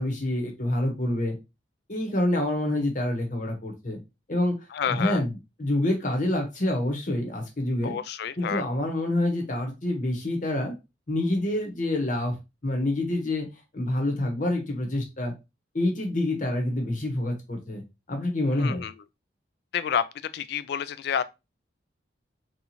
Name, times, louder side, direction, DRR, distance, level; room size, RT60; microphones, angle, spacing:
voice 1, 0.0-1.4 1.9-4.0 4.3-4.6 4.9-7.9 8.4-10.7 11.1-12.3 12.6-13.5 13.7-15.3 15.7-17.8 18.1-18.8, left 1 dB, 40° left, 0.9 m, -27 dB
voice 2, 4.7-5.2 7.8-8.7 18.6-18.9 19.7-20.0 20.3-21.2, left 7 dB, 60° left, 0.3 m, -29 dB
4.1 x 2.4 x 2.9 m
head